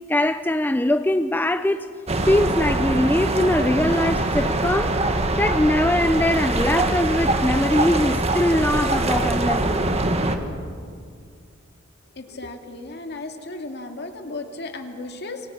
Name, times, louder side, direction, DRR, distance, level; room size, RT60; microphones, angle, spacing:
voice 1, 0.1-1.9 2.3-4.9 5.4-9.8, left 1 dB, 10° left, 0.5 m, -21 dB
sound 1, 2.1-10.4, right 2 dB, 30° right, 1.7 m, -23 dB
voice 2, 12.2-15.4, left 2 dB, 55° left, 2.4 m, -35 dB
28.0 x 23.5 x 6.1 m
head